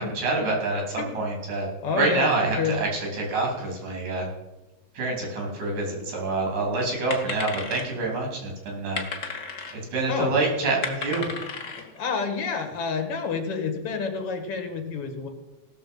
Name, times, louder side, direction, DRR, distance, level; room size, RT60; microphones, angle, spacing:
voice 1, 0.0-4.3 4.9-9.0 9.7-11.2, right 3 dB, 80° right, -1 dB, 4.9 m, -27 dB
voice 2, 1.8-2.8 10.1-10.3 11.8-15.3, left 5 dB, 55° left, 5 dB, 2.4 m, -29 dB
sound 1, 5.6-5.7 5.8-6.4 6.7-8.1 8.7-9.8 10.3-10.4 10.6-12.1, left 4 dB, 75° left, 0.7 m, -34 dB
17.0 x 6.8 x 5.5 m, 1.0 s
omnidirectional pair, 3.3 m